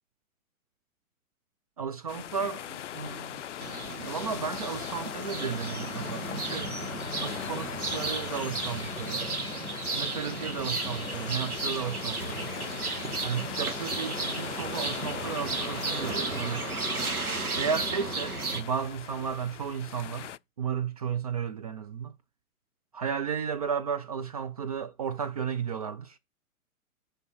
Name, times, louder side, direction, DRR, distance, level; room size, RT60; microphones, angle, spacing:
voice 1, 1.8-3.4 4.0-6.7 7.2-9.3 9.9-12.5 13.2-16.7 17.6-20.3 20.6-22.1 22.9-26.2, right 7 dB, 30° right, 0.4 m, -34 dB
sound 1, 2.1-20.4, left 10 dB, 60° left, 0.5 m, -40 dB
sound 2, 3.6-18.6, right 3 dB, 85° right, 1.5 m, -34 dB
6.8 x 5.6 x 6.1 m
figure-of-eight pair, 115°, 43 cm